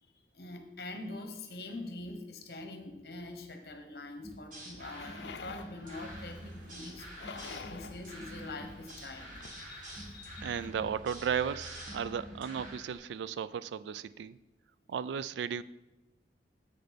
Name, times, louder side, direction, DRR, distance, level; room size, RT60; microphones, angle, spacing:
voice 1, 0.0-7.4 7.7-10.7, left 2 dB, 60° left, 6 dB, 1.0 m, -44 dB
sound 1, 4.2-13.0, right 1 dB, 45° right, 1.7 m, -47 dB
sound 2, 4.8-9.6, left 5 dB, 80° left, 0.5 m, -49 dB
sound 3, 5.8-12.1, equal, 25° right, 1.3 m, -53 dB
voice 2, 10.4-14.4 14.9-15.6, right 7 dB, 85° right, 17 dB, 0.3 m, -35 dB
7.7 x 6.6 x 4.1 m, 1.0 s
head